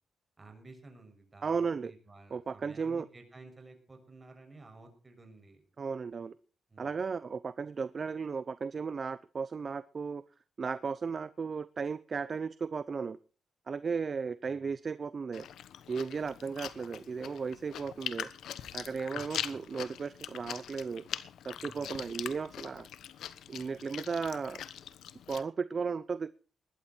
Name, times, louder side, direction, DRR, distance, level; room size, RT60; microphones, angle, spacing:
voice 1, 0.4-5.6 6.7-7.0 14.4-14.7 19.1-19.2 19.5-19.6 21.6-22.0, right 3 dB, 25° right, 5 dB, 6.5 m, -54 dB
voice 2, 1.4-1.9 2.3-3.1 5.8-6.3 6.8-10.2 10.6-13.2 13.7-15.5 15.9-18.3 18.7-21.0 21.4-22.9 23.5-24.6 25.3-26.3, right 5 dB, 45° right, 16 dB, 0.7 m, -35 dB
Chewing mastication, 15.3-25.4, left 10 dB, 85° left, 1.1 m, -42 dB
20.0 x 12.0 x 4.5 m, 0.38 s
cardioid pair, 90°, 0 cm